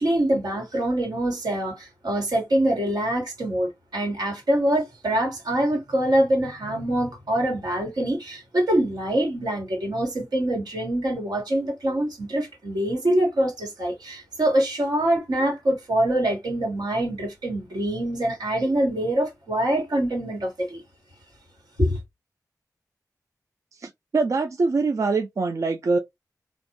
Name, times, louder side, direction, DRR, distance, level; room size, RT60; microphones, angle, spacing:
voice 1, 0.0-20.8 21.8-22.0, right 1 dB, 85° right, 1.5 m, -24 dB
voice 2, 23.8-26.0, right 3 dB, 50° right, 0.3 m, -24 dB
2.5 x 2.1 x 2.9 m
wide cardioid pair, 95°, 7 cm